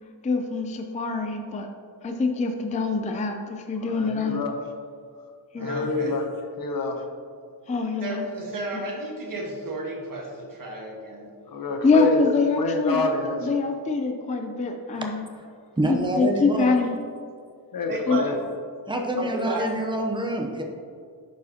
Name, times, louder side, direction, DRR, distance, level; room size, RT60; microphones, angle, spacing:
voice 1, 0.2-1.7 2.0-4.4 5.5-5.9 7.7-8.3 11.8-13.1 13.4-15.2 15.9-17.0 18.1-18.2, left 3 dB, 20° left, 4 dB, 0.4 m, -24 dB
voice 2, 3.8-4.5 5.6-6.3 6.6-7.1 11.5-12.2 12.6-13.5 17.7-18.4, left 3 dB, 55° left, 3 dB, 0.8 m, -28 dB
voice 3, 5.6-6.1 8.0-11.3 17.9-18.3 19.2-19.6, right 2 dB, 50° right, -2 dB, 1.4 m, -33 dB
voice 4, 15.8-16.8 18.9-20.6, right 1 dB, 10° right, 1 dB, 0.7 m, -26 dB
10.5 x 4.7 x 2.8 m, 2.3 s
wide cardioid pair, 175°, 42 cm